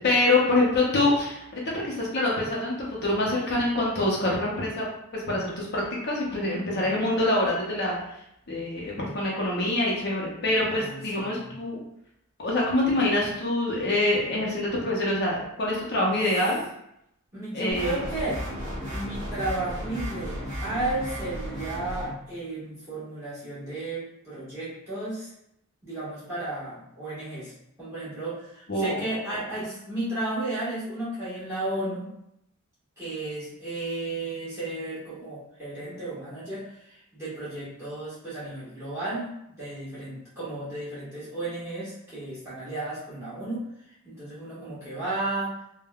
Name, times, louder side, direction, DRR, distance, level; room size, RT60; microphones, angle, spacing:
voice 1, 0.0-4.9 5.1-8.2 8.5-11.8 12.4-16.6 17.5-18.0 28.7-29.1 29.3-29.4, left 2 dB, 50° left, -4 dB, 0.5 m, -25 dB
voice 2, 6.4-7.2 10.7-11.5 17.3-18.4 18.9-25.3 25.8-27.5 27.8-32.2 33.0-39.3 39.6-43.6 44.0-45.5, right 2 dB, 15° right, -11 dB, 1.3 m, -33 dB
sound 1, 17.7-22.1, equal, 35° right, 0.9 m, -34 dB
3.3 x 2.1 x 2.2 m, 0.79 s
head